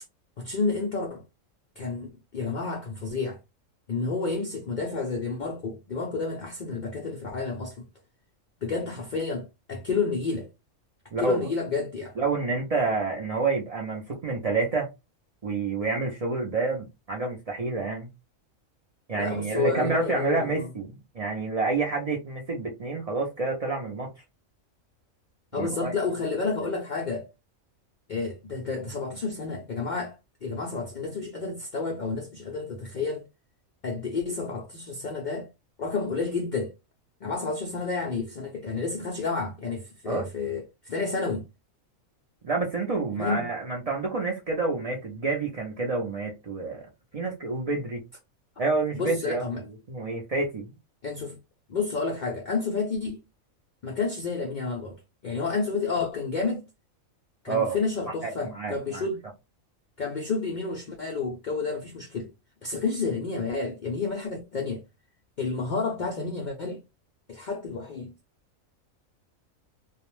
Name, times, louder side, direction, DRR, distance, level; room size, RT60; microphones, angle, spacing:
voice 1, 0.4-1.2 1.8-3.4 3.9-7.9 8.6-10.5 11.2-12.1 19.1-20.7 25.5-27.3 28.1-30.1 30.4-33.2 33.8-35.5 35.8-36.7 37.2-41.5 43.2-43.5 49.0-49.6 51.0-51.4 51.7-53.2 53.8-55.0 55.2-56.6 57.4-59.2 60.0-62.3 62.6-64.8 65.4-66.8 67.3-68.1, left 4 dB, 80° left, 0.4 m, -30 dB
voice 2, 11.1-11.5 12.2-14.9 15.4-18.1 19.1-24.1 25.5-25.9 40.0-40.3 42.4-46.8 47.1-48.0 48.6-49.4 49.9-50.7 57.5-57.8 58.2-59.0, right 3 dB, 75° right, 0.3 m, -28 dB
2.3 x 2.1 x 3.0 m
omnidirectional pair, 1.4 m